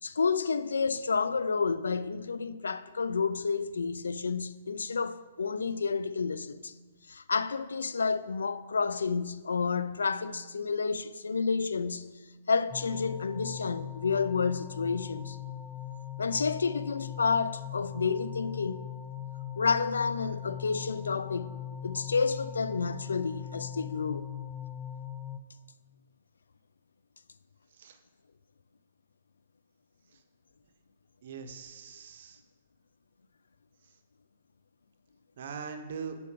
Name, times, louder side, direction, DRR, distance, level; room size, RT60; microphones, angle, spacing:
voice 1, 0.0-6.7 7.1-12.1 12.5-15.4 16.2-18.8 19.6-24.3, left 5 dB, 90° left, 0.4 m, -30 dB
sound 1, 12.7-25.4, left 10 dB, 10° left, 0.3 m, -40 dB
voice 2, 31.2-32.4 35.4-36.2, right 6 dB, 60° right, 0.8 m, -41 dB
6.8 x 5.0 x 5.0 m
hypercardioid pair, 140°, 0 cm